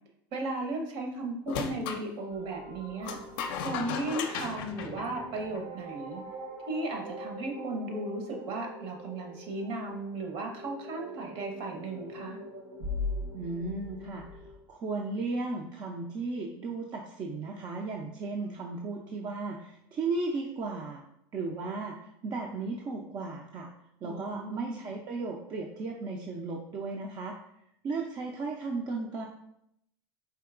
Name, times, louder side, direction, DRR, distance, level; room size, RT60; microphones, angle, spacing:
voice 1, 0.3-3.2 3.6-6.2 6.7-12.4 24.0-24.8, right 2 dB, 50° right, 3 dB, 0.9 m, -35 dB
sound 1, 1.5-2.0 3.0-5.7, left 7 dB, 60° left, 0.5 m, -36 dB
sound 2, 2.3-14.6, left 1 dB, 70° right, 1.2 m, -42 dB
voice 2, 13.3-21.0 21.3-23.7 24.0-27.4 27.8-29.3, right 3 dB, 30° right, 0 dB, 0.4 m, -35 dB
4.5 x 2.8 x 2.4 m, 0.76 s
hypercardioid pair, 105°, 13 cm